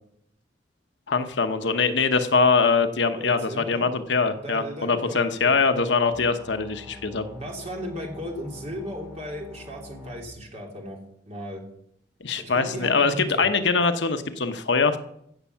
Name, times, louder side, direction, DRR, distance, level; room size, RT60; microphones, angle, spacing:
voice 1, 1.1-7.2 12.2-15.0, left 4 dB, 70° left, 8 dB, 0.9 m, -23 dB
voice 2, 3.2-3.8 4.3-5.5 7.3-11.0 11.3-11.6 12.4-13.5, equal, 35° right, 0 dB, 3.0 m, -36 dB
sound 1, 6.1-10.2, left 1 dB, 10° right, 3.9 m, -46 dB
16.0 x 7.1 x 5.7 m, 0.72 s
head